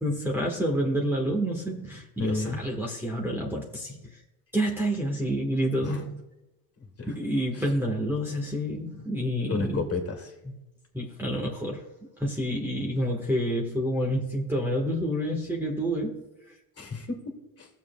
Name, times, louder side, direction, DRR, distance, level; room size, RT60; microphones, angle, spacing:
voice 1, 0.0-4.0 4.5-6.2 7.1-9.8 10.4-10.6 10.9-11.8 12.2-16.2, equal, 5° right, -3 dB, 1.3 m, -28 dB
voice 2, 2.2-2.6 5.8-6.1 6.8-7.1 7.5-7.6 9.5-10.3 16.8-17.7, left 3 dB, 30° left, 2 dB, 2.1 m, -32 dB
16.5 x 7.1 x 2.2 m, 0.97 s
supercardioid pair, 100°, 45 cm